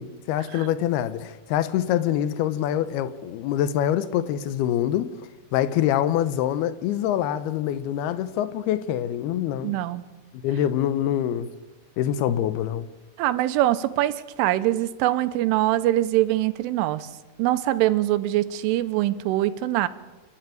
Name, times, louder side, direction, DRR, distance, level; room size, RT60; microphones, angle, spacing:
voice 1, 0.0-5.1 5.5-9.7 10.4-11.5 12.0-12.9, left 11 dB, 85° left, 2.2 m, -25 dB
voice 2, 9.6-10.0 13.2-17.1 17.4-19.9, right 15 dB, 90° right, 3.4 m, -23 dB
27.5 x 11.5 x 9.1 m
omnidirectional pair, 5.5 m